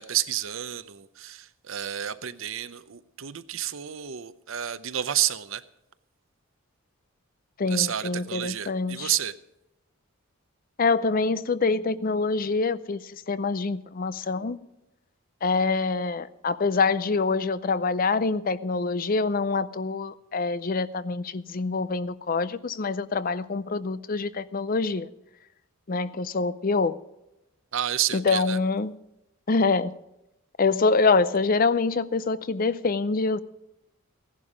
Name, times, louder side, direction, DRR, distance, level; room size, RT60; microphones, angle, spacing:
voice 1, 0.0-5.6 7.7-9.3 27.7-28.6, right 11 dB, 65° right, 14 dB, 0.7 m, -30 dB
voice 2, 7.6-9.1 10.8-14.6 15.4-25.1 25.9-27.0 28.1-28.9 29.5-29.9 30.6-33.4, left 4 dB, 40° left, 16 dB, 0.5 m, -25 dB
16.0 x 11.5 x 5.0 m, 0.89 s
head